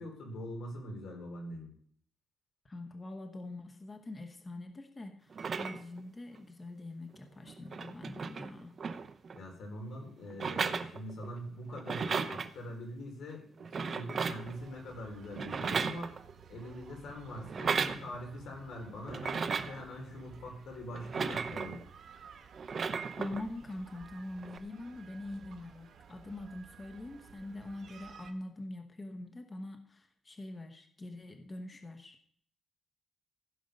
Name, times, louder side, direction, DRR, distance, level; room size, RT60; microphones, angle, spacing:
voice 1, 0.0-1.7 9.3-16.1 16.5-21.8, left 1 dB, 70° left, 2 dB, 4.3 m, -43 dB
voice 2, 2.6-8.8 23.1-32.2, left 2 dB, 20° left, 5 dB, 1.1 m, -44 dB
sound 1, 5.3-6.0 7.1-7.2 7.5-9.4 10.3-11.4 11.7-12.5 13.6-14.6 15.3-16.4 17.4-18.0 19.1-19.8 20.9-21.8 22.5-23.4 24.4-24.6, right 5 dB, 35° right, 0.7 m, -35 dB
sound 2, 14.4-28.3, right 7 dB, 55° right, 1.3 m, -56 dB
15.5 x 6.7 x 5.3 m, 0.62 s
wide cardioid pair, 180°, 0 cm